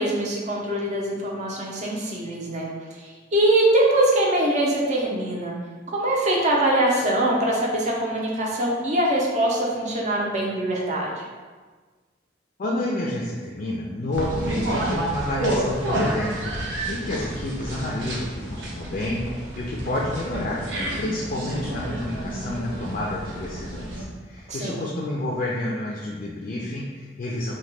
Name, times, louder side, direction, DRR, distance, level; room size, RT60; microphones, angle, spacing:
voice 1, 0.0-2.7 3.0-5.5 5.9-11.2 24.5-24.9, right 1 dB, 40° right, -3 dB, 0.6 m, -23 dB
voice 2, 12.6-20.6 21.0-27.5, left 1 dB, 50° left, -3 dB, 0.3 m, -29 dB
sound 1, 14.1-24.0, right 1 dB, 80° right, 0.6 m, -30 dB
2.8 x 2.2 x 3.2 m, 1.4 s
head